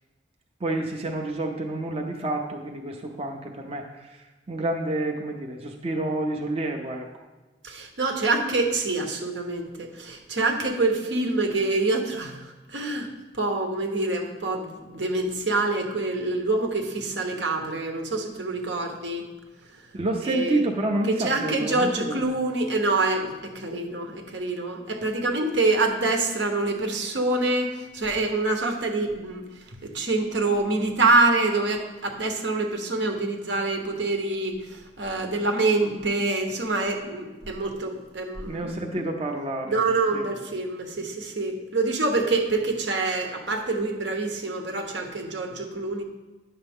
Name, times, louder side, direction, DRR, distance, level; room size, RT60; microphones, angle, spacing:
voice 1, 0.6-7.0 19.9-22.2 38.5-39.8 40.1-40.3, right 2 dB, 35° right, 1 dB, 0.6 m, -29 dB
voice 2, 7.6-19.2 20.2-20.6 21.0-29.4 29.7-38.7 39.7-46.0, right 2 dB, 75° right, 3 dB, 1.1 m, -26 dB
9.6 x 6.6 x 3.6 m, 1.2 s
head